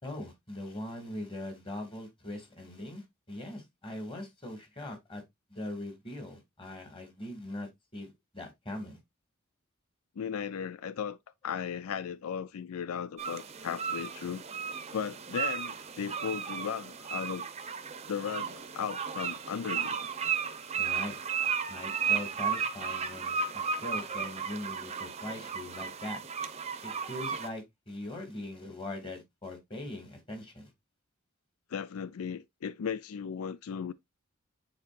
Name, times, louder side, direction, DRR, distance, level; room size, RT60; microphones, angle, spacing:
voice 1, 0.0-5.2 5.5-9.0 20.8-21.2 21.7-26.2 26.8-30.7, left 1 dB, 25° left, 2.2 m, -41 dB
voice 2, 10.2-11.2 11.4-14.4 14.9-17.5 18.1-20.0 31.7-33.9, left 7 dB, 85° left, 0.4 m, -36 dB
sound 1, 13.2-27.5, right 6 dB, 30° right, 0.7 m, -34 dB
9.4 x 4.1 x 2.5 m
head